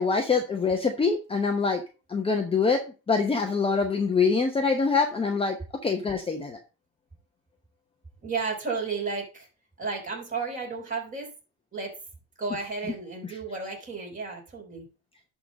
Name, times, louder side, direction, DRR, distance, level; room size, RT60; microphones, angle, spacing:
voice 1, 0.0-1.8 2.1-2.8 3.1-5.6 5.8-6.6 13.2-13.3, left 4 dB, 15° left, 3 dB, 0.9 m, -24 dB
voice 2, 8.2-9.5 9.8-11.3 11.7-11.9 12.4-14.8, right 4 dB, 20° right, 0 dB, 4.4 m, -33 dB
11.0 x 4.0 x 5.2 m, 0.33 s
cardioid pair, 130°, 37 cm